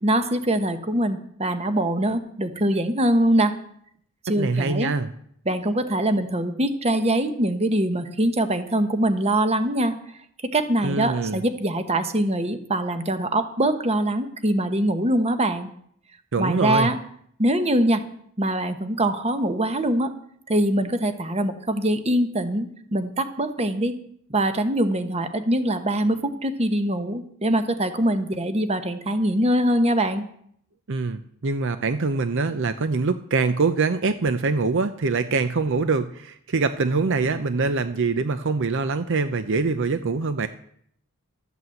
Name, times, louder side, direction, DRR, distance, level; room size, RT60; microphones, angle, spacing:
voice 1, 0.0-3.5 4.2-4.9 5.4-9.9 10.5-15.7 16.4-17.0 17.4-18.0 18.4-20.1 20.5-23.9 24.3-30.2, right 1 dB, 30° right, 9 dB, 1.1 m, -23 dB
voice 2, 4.4-5.1 10.8-11.4 16.3-16.9 30.9-40.5, right 4 dB, 60° right, 11 dB, 0.6 m, -24 dB
13.0 x 8.3 x 7.8 m, 0.68 s
head